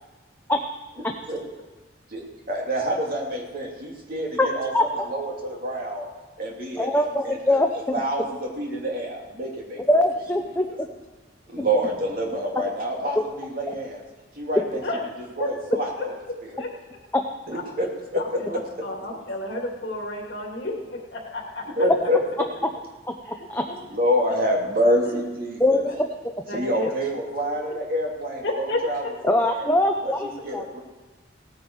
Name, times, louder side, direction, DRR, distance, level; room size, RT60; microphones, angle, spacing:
voice 1, 2.5-6.1 6.4-7.6 7.9-9.8 10.7-10.8 11.5-14.0 14.4-14.8 15.4-16.1 16.4-16.6 17.5-18.4 21.8-22.2 23.9-25.9 26.5-29.7 30.0-30.1 30.4-30.8, equal, 45° right, -1 dB, 2.8 m, -27 dB
voice 2, 6.8-7.7 9.9-10.9 17.1-17.2 23.5-23.6 25.6-26.1 29.2-30.6, left 1 dB, 10° left, 3 dB, 0.7 m, -22 dB
voice 3, 15.4-15.8 16.6-16.7 17.5-17.6 18.4-21.6 23.2-23.7 25.1-25.2 25.9-26.0 26.5-26.9 28.4-28.8, left 2 dB, 60° left, 0 dB, 2.8 m, -31 dB
17.5 x 9.5 x 4.7 m, 1.2 s
head